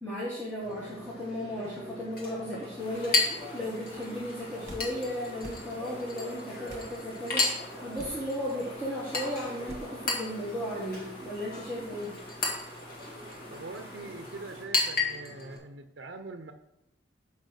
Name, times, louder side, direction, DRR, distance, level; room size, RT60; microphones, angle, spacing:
voice 1, 0.0-12.1, equal, 10° left, -7 dB, 1.5 m, -35 dB
Chink clink, 0.6-15.6, left 3 dB, 50° left, 1.9 m, -35 dB
sound 1, 2.8-14.6, equal, 30° left, 2.3 m, -48 dB
sound 2, 4.6-4.9 5.4-5.6 6.7-6.9 8.0-8.2 9.7-9.9, right 1 dB, 35° right, 1.5 m, -44 dB
voice 2, 13.5-16.5, right 3 dB, 70° right, 6 dB, 0.6 m, -43 dB
6.5 x 5.4 x 6.5 m, 0.87 s
head